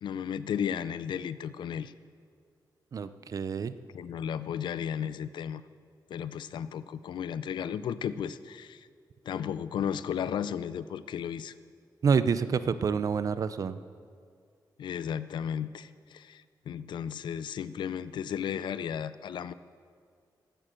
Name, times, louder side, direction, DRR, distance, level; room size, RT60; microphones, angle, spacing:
voice 1, 0.0-1.9 3.9-5.6 6.1-8.9 9.3-11.5 14.8-19.5, left 8 dB, 85° left, 15 dB, 0.5 m, -34 dB
voice 2, 2.9-3.7 12.0-13.8, right 6 dB, 50° right, 13 dB, 0.5 m, -27 dB
13.5 x 9.0 x 7.5 m, 2.2 s
wide cardioid pair, 140°, 8 cm